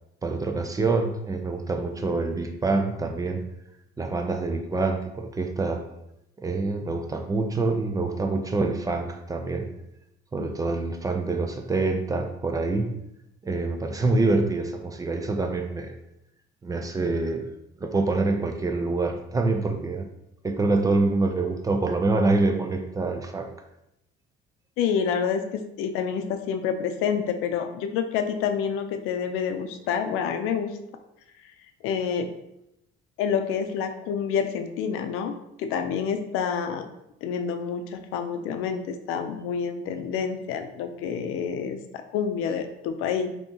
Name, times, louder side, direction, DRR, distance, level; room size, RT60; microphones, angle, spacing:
voice 1, 0.2-3.4 4.0-5.8 6.4-9.7 10.3-12.9 13.4-15.9 16.6-17.5 17.8-20.1 20.4-23.5, right 3 dB, 15° right, 5 dB, 0.4 m, -26 dB
voice 2, 24.8-30.8 31.8-32.3 33.2-36.9 37.2-43.3, left 7 dB, 85° left, 7 dB, 0.5 m, -28 dB
5.4 x 2.9 x 2.7 m, 0.83 s
cardioid pair, 140°, 21 cm